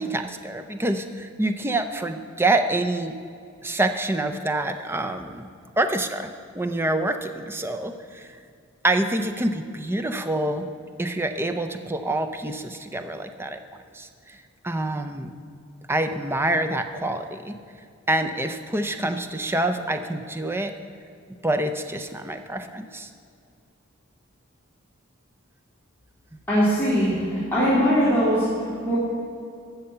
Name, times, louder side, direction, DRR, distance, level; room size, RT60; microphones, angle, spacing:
voice 1, 0.0-3.1 3.6-5.5 5.8-6.3 6.5-8.3 8.8-10.7 11.0-13.6 13.9-14.4 14.6-15.3 15.9-17.6 18.1-20.7 21.4-23.1, right 2 dB, 10° right, 8 dB, 0.5 m, -26 dB
voice 2, 26.5-28.4 28.8-29.0, equal, 10° left, -11 dB, 2.5 m, -21 dB
13.0 x 5.7 x 7.8 m, 2.4 s
head